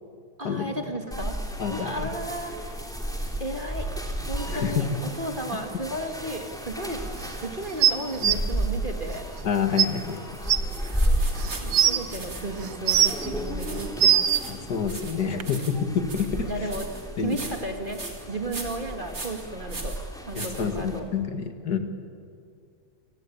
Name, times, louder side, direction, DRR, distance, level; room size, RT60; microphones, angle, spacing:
voice 1, 0.4-1.4 1.7-2.6 3.4-3.9 4.3-4.9 5.2-9.2 10.8-11.1 11.6-14.2 16.4-16.9 17.2-18.0 18.3-20.0 20.3-21.1, right 1 dB, 25° right, 4 dB, 2.1 m, -34 dB
sound 1, 1.1-21.0, right 1 dB, ahead, 2.8 m, -33 dB
voice 2, 1.6-2.1 4.5-4.8 8.2-8.4 9.4-10.2 14.5-16.6 17.2-17.4 20.3-21.8, left 7 dB, 55° left, 6 dB, 2.4 m, -28 dB
sound 2, 7.8-8.3 9.4-9.5 9.8-9.9 10.5-10.6 11.4-12.0 12.6-13.3 13.7-14.4 15.4-15.5, right 10 dB, 60° right, 1.4 m, -20 dB
sound 3, 10.7-21.2, right 2 dB, 45° right, 3.7 m, -40 dB
29.5 x 19.5 x 8.7 m, 2.3 s
omnidirectional pair, 2.1 m